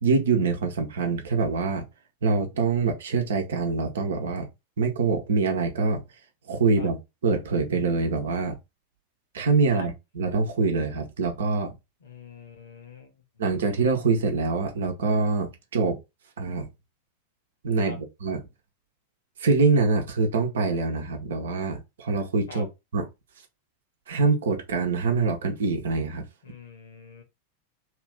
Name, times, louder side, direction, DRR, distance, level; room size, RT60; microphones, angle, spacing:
voice 1, 0.0-1.8 2.2-4.5 4.8-6.0 6.5-7.0 7.2-8.6 9.3-11.8 13.4-16.0 16.4-16.7 17.6-18.4 19.4-22.7 22.9-23.0 24.1-26.2, right 4 dB, 65° right, 0.8 m, -24 dB
voice 2, 12.0-13.2 17.8-18.0 22.5-22.6 26.4-27.2, left 4 dB, 65° left, 1.1 m, -43 dB
2.9 x 2.6 x 3.3 m
figure-of-eight pair, 90°, 0 cm